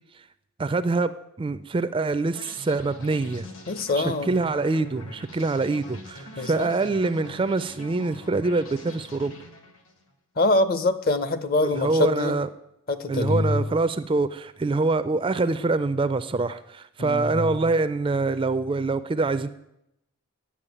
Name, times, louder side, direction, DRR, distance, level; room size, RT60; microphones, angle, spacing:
voice 1, 0.6-1.1 1.4-3.5 4.0-9.3 11.6-12.5 13.1-19.5, right 3 dB, 25° right, 0.3 m, -25 dB
sound 1, 2.3-10.0, left 2 dB, 70° left, 1.8 m, -44 dB
voice 2, 3.7-4.3 6.4-6.7 10.4-12.4 12.9-13.7 17.0-17.6, left 2 dB, 45° left, 0.7 m, -24 dB
9.8 x 7.2 x 8.9 m
head